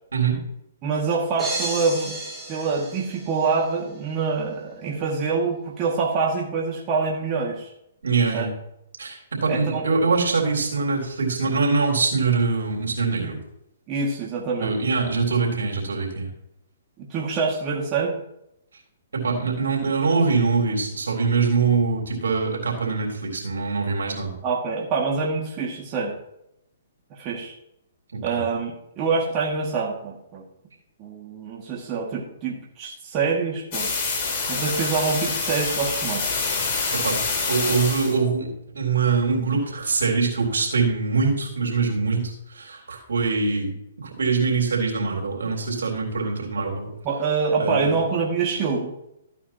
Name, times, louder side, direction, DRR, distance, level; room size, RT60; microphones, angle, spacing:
voice 1, 0.8-2.1 2.5-7.7 8.3-8.5 9.5-9.8 13.9-14.7 17.0-18.2 24.4-26.1 27.2-27.5 28.2-30.4 31.0-33.9 34.5-36.3 47.0-48.9, right 4 dB, 30° right, -3 dB, 2.2 m, -25 dB
sound 1, 1.4-3.6, right 2 dB, 10° right, 3.7 m, -32 dB
voice 2, 8.0-8.5 9.0-13.4 14.6-16.3 19.1-24.3 28.1-28.4 36.9-37.2 37.5-43.7 44.0-46.8 47.6-47.9, right 4 dB, 80° right, 0 dB, 3.8 m, -23 dB
sound 2, 33.7-38.2, left 4 dB, 40° left, 4.3 m, -26 dB
14.5 x 9.2 x 3.0 m, 0.80 s
hypercardioid pair, 135°, 0 cm